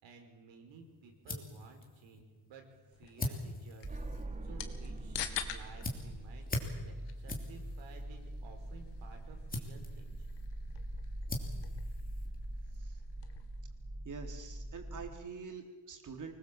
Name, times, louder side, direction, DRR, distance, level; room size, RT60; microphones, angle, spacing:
voice 1, 0.0-2.6 2.9-4.0 4.4-5.2 5.4-10.1, right 4 dB, 80° right, 4 dB, 5.2 m, -55 dB
sound 1, 0.7-12.8, left 2 dB, 20° left, 3.2 m, -44 dB
sound 2, 2.9-13.6, left 9 dB, 70° left, 2.3 m, -48 dB
sound 3, 3.8-15.1, right 1 dB, 15° right, 1.6 m, -43 dB
voice 2, 14.0-16.4, right 5 dB, 45° right, 4 dB, 3.8 m, -45 dB
25.0 x 21.0 x 7.6 m, 1.4 s
cardioid pair, 145°, 44 cm